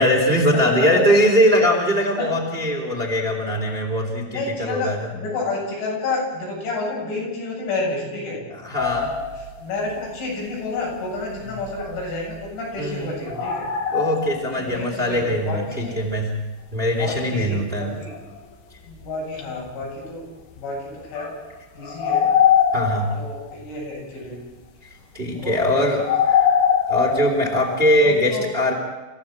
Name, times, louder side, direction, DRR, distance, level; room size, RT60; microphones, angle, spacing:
voice 1, 0.0-5.1 8.5-9.1 12.8-13.1 13.9-16.3 16.7-17.9 22.7-23.1 25.1-26.0 26.9-28.7, equal, 15° right, 0 dB, 3.0 m, -21 dB
voice 2, 4.3-8.4 9.6-13.7 14.6-16.0 16.9-18.2 18.9-20.3 20.5-21.3 21.8-22.3 23.1-24.5 25.3-25.7 28.0-28.5, left 3 dB, 75° left, -3 dB, 10.5 m, -30 dB
sound 1, 8.8-10.0 11.2-12.4 13.2-14.8 15.1-15.2 16.6-16.7 17.1-17.2 17.5-17.6 18.1-18.5 18.9-19.1 19.4-19.7 20.5-20.6 21.1-23.6 25.9-27.9, left 8 dB, 60° left, 3.9 m, -22 dB
29.0 x 15.5 x 7.7 m, 1.1 s
omnidirectional pair, 5.6 m